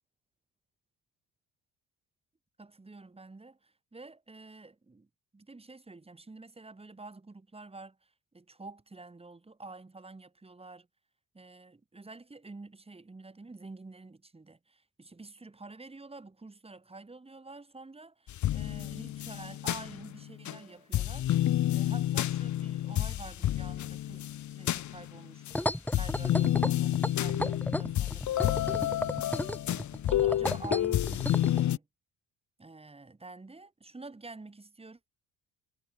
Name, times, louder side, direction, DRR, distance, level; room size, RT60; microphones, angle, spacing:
voice 1, 2.6-5.1 5.3-10.9 11.3-29.5 30.0-31.9 32.6-35.0, right 3 dB, 15° right, 4.2 m, -49 dB
sound 1, 18.3-20.6 20.9-25.6 25.9-31.8, left 12 dB, 50° left, 0.9 m, -30 dB
sound 2, 25.5-31.6, left 1 dB, 5° left, 1.4 m, -33 dB
cardioid pair, 125°, 38 cm